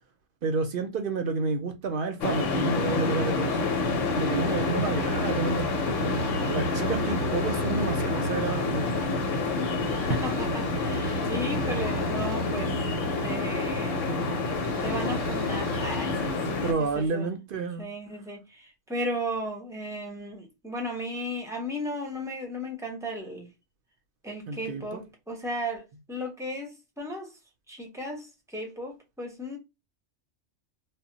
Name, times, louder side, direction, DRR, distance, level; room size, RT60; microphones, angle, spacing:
voice 1, 0.4-3.6 4.1-5.7 6.5-8.9 16.6-17.9 24.5-25.0, right 4 dB, 60° right, 0.6 m, -30 dB
sound 1, 2.2-16.7, left 3 dB, 85° left, 0.9 m, -28 dB
sound 2, 2.7-17.1, right 3 dB, 90° right, 1.0 m, -38 dB
voice 2, 10.1-12.7 13.2-14.0 14.8-17.3 17.8-23.5 24.2-27.3 27.7-29.6, equal, 5° right, 0.4 m, -35 dB
2.1 x 2.0 x 3.7 m
omnidirectional pair, 1.3 m